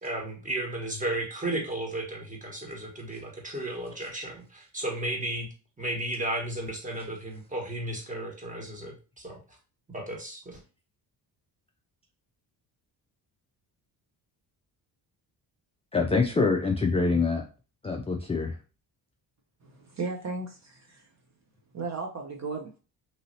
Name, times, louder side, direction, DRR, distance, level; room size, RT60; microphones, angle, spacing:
voice 1, 0.0-9.4 9.9-10.6, right 1 dB, 15° right, 1.3 m, -34 dB
voice 2, 15.9-17.5 17.8-18.5, left 4 dB, 15° left, 0.3 m, -25 dB
voice 3, 19.6-21.1 21.7-22.8, right 4 dB, 40° right, 0.7 m, -35 dB
3.1 x 2.7 x 2.7 m
cardioid pair, 70°, 45 cm